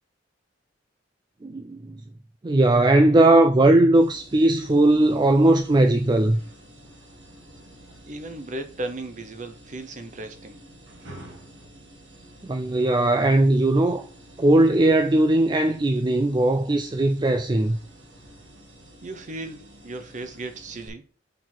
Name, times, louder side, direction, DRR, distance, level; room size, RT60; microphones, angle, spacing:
voice 1, 1.4-2.0 2.4-6.4 12.4-14.1 14.4-17.8, right 2 dB, 25° right, 0.4 m, -19 dB
sound 1, 3.9-20.9, right 1 dB, 80° right, 2.0 m, -49 dB
voice 2, 8.0-10.6 19.0-21.1, right 2 dB, 40° right, 0.8 m, -36 dB
6.4 x 4.5 x 3.9 m
head